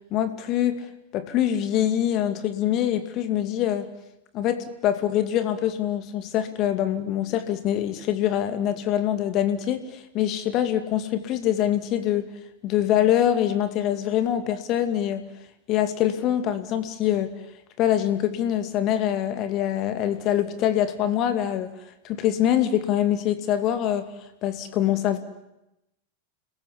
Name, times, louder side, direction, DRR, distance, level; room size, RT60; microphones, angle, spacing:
voice 1, 0.1-0.8 1.1-3.9 4.3-12.3 12.6-15.3 15.7-17.3 17.8-21.7 22.0-24.1 24.4-25.2, left 11 dB, 35° left, 10 dB, 2.5 m, -24 dB
30.0 x 21.0 x 8.5 m, 0.89 s
figure-of-eight pair, 90°, 0 cm